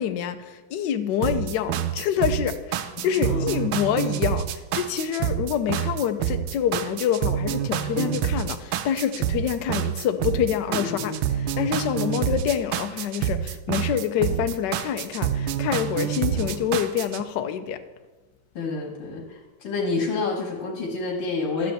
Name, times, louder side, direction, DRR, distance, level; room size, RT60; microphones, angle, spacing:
voice 1, 0.0-17.8, left 9 dB, 70° left, 8 dB, 1.1 m, -26 dB
sound 1, 1.2-17.2, right 10 dB, 85° right, 1.5 m, -27 dB
voice 2, 3.0-3.5 8.0-8.1 10.7-11.2 16.2-16.6 18.6-21.7, left 3 dB, 85° left, -2 dB, 2.3 m, -29 dB
12.0 x 4.3 x 7.8 m, 1.2 s
omnidirectional pair, 2.4 m